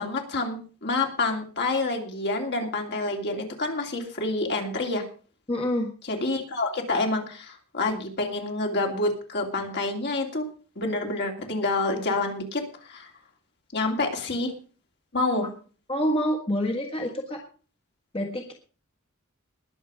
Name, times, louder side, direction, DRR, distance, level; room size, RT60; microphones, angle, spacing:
voice 1, 0.0-5.0 6.0-10.5 10.8-13.1 13.7-14.5 15.1-15.5, left 2 dB, 50° left, 2 dB, 2.8 m, -28 dB
voice 2, 5.5-5.9 15.9-17.4 18.1-18.5, equal, 25° left, 2 dB, 1.7 m, -27 dB
20.5 x 7.2 x 4.9 m, 0.38 s
head